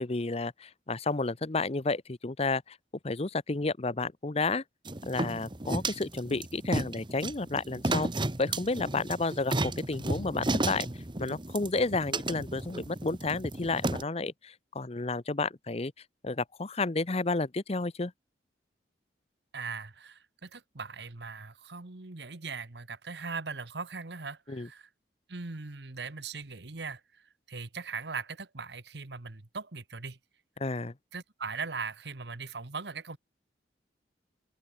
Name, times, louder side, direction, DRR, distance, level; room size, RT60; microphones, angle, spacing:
voice 1, 0.0-2.8 3.0-4.6 5.1-8.1 8.4-10.9 11.2-15.9 16.2-18.1 24.5-24.7 30.6-30.9, left 3 dB, 35° left, 0.8 m, -31 dB
sound 1, 4.9-14.0, right 2 dB, 25° right, 1.4 m, -33 dB
voice 2, 19.5-24.9 25.3-30.2 31.1-33.2, right 4 dB, 70° right, 1.4 m, -40 dB
head